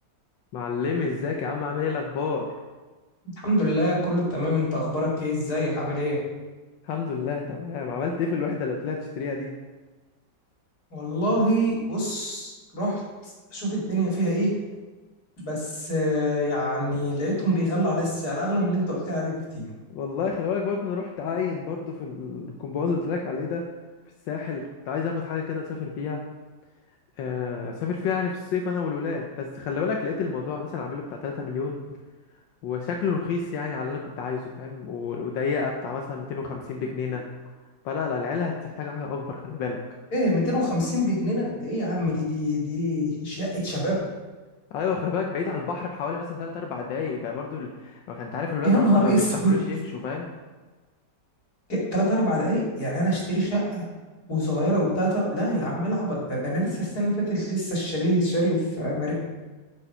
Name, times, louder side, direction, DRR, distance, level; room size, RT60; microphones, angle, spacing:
voice 1, 0.5-2.5 6.8-9.5 19.9-23.7 24.3-26.2 27.2-31.8 32.6-37.2 37.8-39.8 44.7-50.3, left 5 dB, 90° left, 1 dB, 1.5 m, -29 dB
voice 2, 3.4-6.2 10.9-14.5 15.4-19.7 40.1-44.0 48.6-49.6 51.7-53.8 54.3-59.1, equal, 55° left, -4 dB, 3.0 m, -25 dB
8.1 x 5.6 x 5.6 m, 1.3 s
omnidirectional pair, 1.9 m